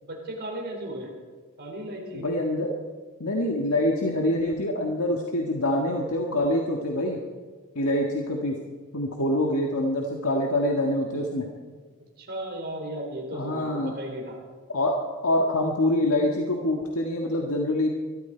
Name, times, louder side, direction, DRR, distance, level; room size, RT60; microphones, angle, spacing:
voice 1, 0.0-1.1 1.6-2.3 12.2-14.4, right 1 dB, 45° right, -1 dB, 4.6 m, -35 dB
voice 2, 2.1-2.7 3.2-7.2 7.8-8.6 8.9-11.5 13.3-13.9 14.7-14.9 15.2-17.9, left 1 dB, 75° left, 0 dB, 1.8 m, -25 dB
22.5 x 13.0 x 4.6 m, 1.4 s
head